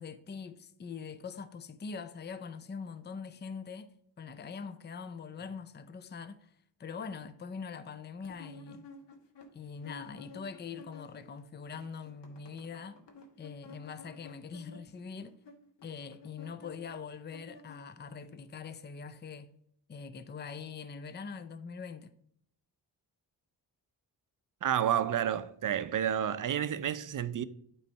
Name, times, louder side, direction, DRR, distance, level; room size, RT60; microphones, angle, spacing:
voice 1, 0.0-3.9 4.2-6.5 6.8-8.9 9.5-13.0 13.4-15.4 15.8-19.5 19.9-22.1, left 5 dB, 25° left, 0.5 m, -43 dB
sound 1, 8.2-11.4 11.6-18.3, left 3 dB, 80° left, 1.2 m, -53 dB
voice 2, 24.6-27.4, right 9 dB, 50° right, 0.5 m, -30 dB
9.1 x 3.2 x 5.5 m
cardioid pair, 70°, 42 cm